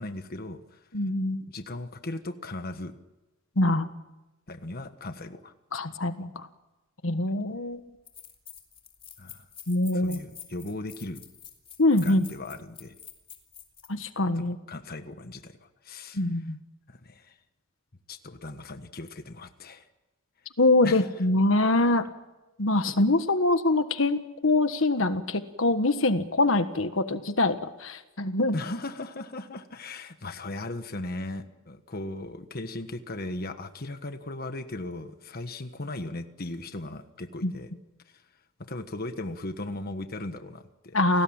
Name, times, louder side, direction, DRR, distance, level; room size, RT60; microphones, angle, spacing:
voice 1, 0.0-0.9 1.5-2.9 4.5-5.5 9.2-9.5 9.9-11.2 11.9-12.9 14.3-16.3 16.9-17.4 18.1-19.9 20.8-21.1 28.5-37.7 38.1-38.2 38.7-41.0, left 2 dB, 50° left, 8 dB, 1.4 m, -37 dB
voice 2, 0.9-1.4 3.6-3.9 5.7-6.5 7.0-7.8 9.7-10.2 11.8-12.2 13.9-14.6 16.1-16.6 20.6-22.0 22.6-28.5 37.4-37.5 40.9-41.2, left 2 dB, 70° left, 9 dB, 1.5 m, -24 dB
sound 1, 7.5-7.6 8.1-13.9, left 8 dB, 30° left, 3.7 m, -47 dB
29.5 x 19.0 x 8.9 m, 1.0 s
head